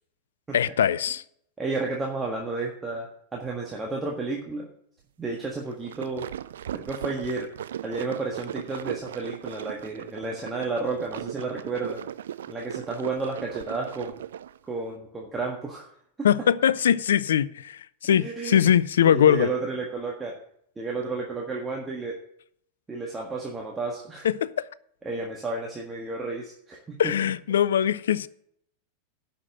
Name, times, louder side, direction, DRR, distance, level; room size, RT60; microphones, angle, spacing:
voice 1, 0.5-1.2 16.2-19.5 24.2-24.7 27.0-28.3, left 9 dB, 65° left, 0.4 m, -22 dB
voice 2, 1.6-4.7 5.2-6.3 6.7-7.5 7.8-12.0 12.5-14.2 14.7-15.9 16.2-16.3 18.2-18.7 19.0-20.3 20.8-22.2 22.9-24.3 25.0-27.1, right 3 dB, 15° right, 1.6 m, -32 dB
sound 1, 5.7-14.6, right 10 dB, 60° right, 0.4 m, -37 dB
11.0 x 5.9 x 7.6 m
figure-of-eight pair, 90°, 0 cm